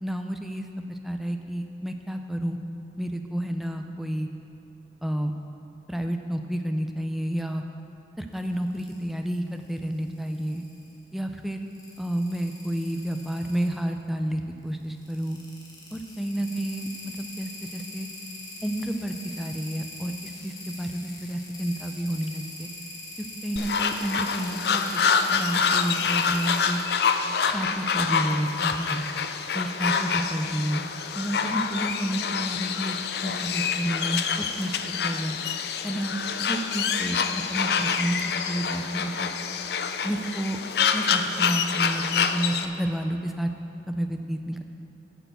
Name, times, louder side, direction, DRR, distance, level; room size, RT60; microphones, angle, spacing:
voice 1, 0.0-0.6 0.9-2.6 3.0-4.3 5.0-5.3 5.9-7.6 8.2-10.6 11.1-11.6 12.0-15.4 15.9-17.1 17.4-18.1 18.6-20.1 20.4-22.7 23.4-25.0 25.3-26.8 27.5-29.0 29.5-30.8 31.2-33.0 33.2-34.2 34.6-34.7 35.0-35.4 35.8-36.1 36.5-37.2 37.5-38.2 38.5-39.3 40.0-40.6 40.9-43.5 43.9-44.6, right 1 dB, ahead, 5 dB, 0.4 m, -30 dB
sound 1, 8.3-9.0 9.6-11.0 11.7-13.8 14.9-26.8, left 2 dB, 20° left, 1.4 m, -42 dB
sound 2, 23.6-42.7, left 6 dB, 65° left, 0.5 m, -27 dB
9.0 x 6.6 x 6.7 m, 3.0 s
head